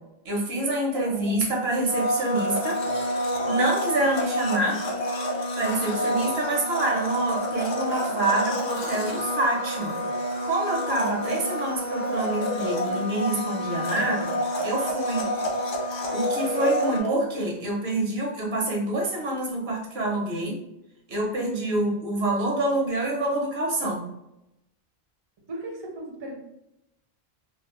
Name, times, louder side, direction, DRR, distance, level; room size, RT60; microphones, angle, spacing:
voice 1, 0.2-2.8 3.5-4.8 5.6-10.0 10.4-14.3 14.6-15.3 16.1-20.6 21.1-24.0, right 2 dB, 80° right, -1 dB, 1.0 m, -26 dB
voice 2, 0.9-1.4 5.9-6.2 16.8-17.2 25.5-26.3, right 2 dB, 35° right, 0 dB, 0.5 m, -34 dB
Domestic sounds home sounds, 1.9-17.0, equal, 50° left, 0.3 m, -28 dB
2.4 x 2.4 x 2.9 m, 0.87 s
omnidirectional pair, 1.0 m